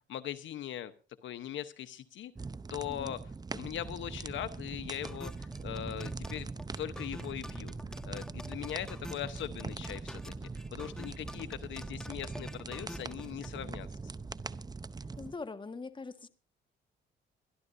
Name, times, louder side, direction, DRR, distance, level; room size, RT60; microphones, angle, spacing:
voice 1, 0.1-0.9 1.2-2.3 2.7-3.2 3.5-6.5 6.8-7.7 8.0-10.2 10.7-14.1, left 11 dB, 75° left, 1.0 m, -40 dB
sound 1, 2.4-15.3, right 4 dB, 20° right, 0.7 m, -42 dB
sound 2, 5.0-13.6, equal, 5° left, 1.4 m, -47 dB
sound 3, 5.6-11.3, right 2 dB, 35° right, 2.2 m, -49 dB
voice 2, 15.2-16.3, left 4 dB, 25° left, 1.6 m, -42 dB
24.0 x 12.0 x 2.6 m
cardioid pair, 90°, 20 cm